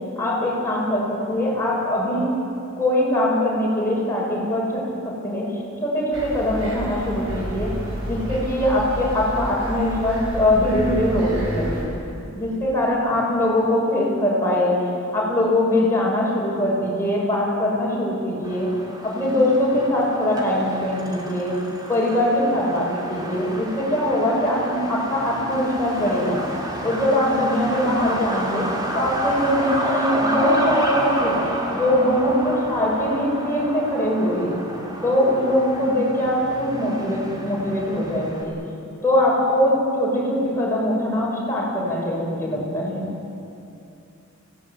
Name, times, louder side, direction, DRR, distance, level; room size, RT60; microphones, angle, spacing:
voice 1, 0.2-1.0 1.3-2.3 2.8-5.5 5.8-7.7 8.0-11.8 12.3-14.8 15.1-18.7 19.0-21.6 21.9-26.4 26.8-28.7 28.9-31.4 31.7-34.6 35.0-38.6 39.0-43.1, left 1 dB, 10° left, -5 dB, 7.5 m, -22 dB
sound 1, 6.1-11.8, equal, 75° right, 5.9 m, -30 dB
Truck, 18.4-38.4, right 1 dB, 20° right, 3.0 m, -30 dB
25.5 x 17.5 x 9.2 m, 2.6 s
head